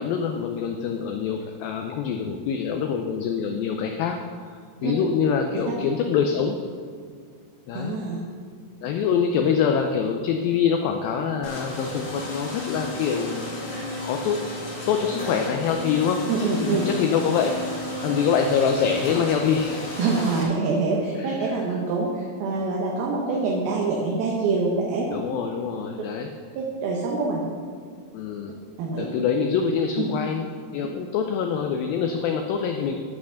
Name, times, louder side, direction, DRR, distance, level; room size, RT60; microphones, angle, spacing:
voice 1, 0.0-4.2 4.5-6.6 7.7-8.0 8.8-13.5 14.0-14.5 14.9-16.3 16.7-17.6 18.0-20.0 21.2-21.4 25.1-26.3 28.1-28.6 29.0-33.0, left 6 dB, 85° left, 4 dB, 2.1 m, -25 dB
voice 2, 7.7-8.2 16.3-16.9 20.0-25.2 26.6-27.4 28.8-29.1 30.0-30.1, right 4 dB, 70° right, -2 dB, 2.8 m, -25 dB
sound 1, 11.4-20.4, left 2 dB, 35° left, 2.2 m, -33 dB
11.0 x 5.9 x 6.4 m, 2.1 s
omnidirectional pair, 4.8 m